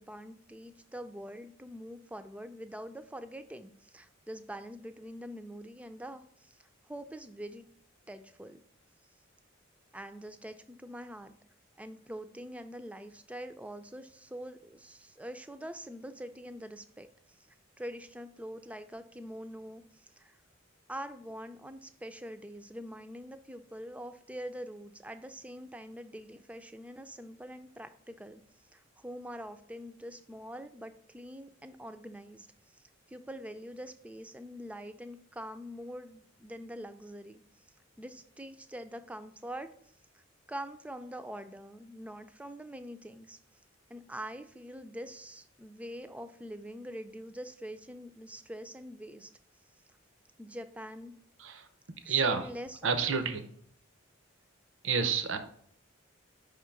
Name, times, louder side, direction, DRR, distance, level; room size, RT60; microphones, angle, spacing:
voice 1, 0.0-6.6 6.9-7.7 8.1-8.6 9.9-11.3 11.8-17.1 17.8-20.4 20.9-28.4 28.7-32.5 32.7-37.4 38.0-39.7 40.1-40.2 40.5-43.4 43.9-49.3 50.4-51.1 52.1-52.9, equal, 5° right, 9 dB, 0.3 m, -44 dB
voice 2, 52.1-52.4 52.8-53.5 54.8-55.4, right 5 dB, 70° right, 9 dB, 0.7 m, -29 dB
5.4 x 3.7 x 5.7 m, 0.64 s
head